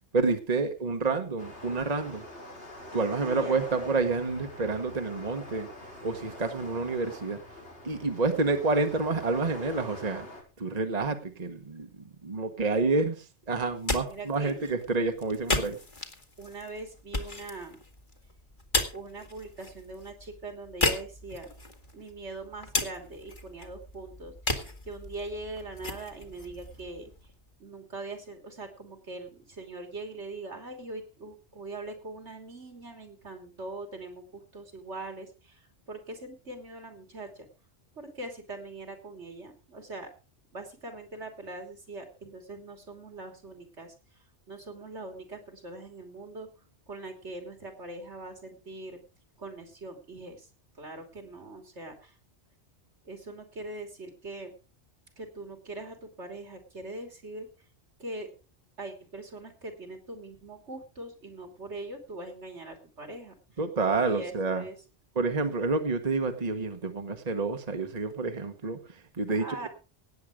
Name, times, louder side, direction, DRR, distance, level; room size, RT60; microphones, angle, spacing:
voice 1, 0.1-2.2 2.9-5.7 6.0-7.4 7.8-10.3 10.6-11.9 12.2-15.8 63.6-64.6 65.1-69.7, right 3 dB, 35° right, 7 dB, 1.3 m, -29 dB
sound 1, 1.4-10.4, left 1 dB, 80° left, 5.9 m, -44 dB
voice 2, 3.2-3.6 14.1-14.7 16.4-17.8 18.9-21.5 21.9-24.3 24.8-27.1 27.6-37.5 37.9-40.1 40.5-43.9 44.5-46.5 46.9-49.0 49.4-50.5 50.8-52.2 53.1-54.5 55.2-57.5 58.0-58.3 58.8-63.4 64.0-64.8 69.4-69.7, right 2 dB, 80° right, 5 dB, 3.4 m, -42 dB
sound 2, 13.6-27.5, left 2 dB, 45° left, 2.2 m, -35 dB
17.5 x 8.4 x 5.0 m, 0.33 s
omnidirectional pair, 1.2 m